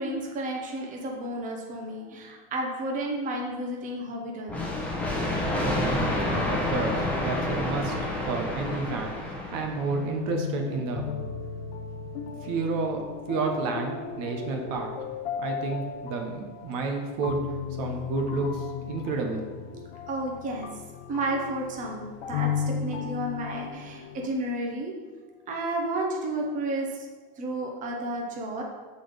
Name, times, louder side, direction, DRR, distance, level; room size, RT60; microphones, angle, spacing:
voice 1, 0.0-4.7 20.1-20.7 21.1-24.9 25.5-27.1 27.4-28.6, right 1 dB, 25° right, 0 dB, 1.0 m, -32 dB
sound 1, 4.5-10.1, left 1 dB, 5° left, 1.1 m, -29 dB
voice 2, 5.6-7.9 8.3-11.1 12.4-14.9 15.4-17.4 17.8-19.5 19.7-19.9, right 3 dB, 55° right, 2 dB, 1.1 m, -31 dB
sound 2, 9.9-24.3, left 7 dB, 85° left, 0.7 m, -35 dB
6.1 x 4.2 x 5.1 m, 1.4 s
supercardioid pair, 130°, 30 cm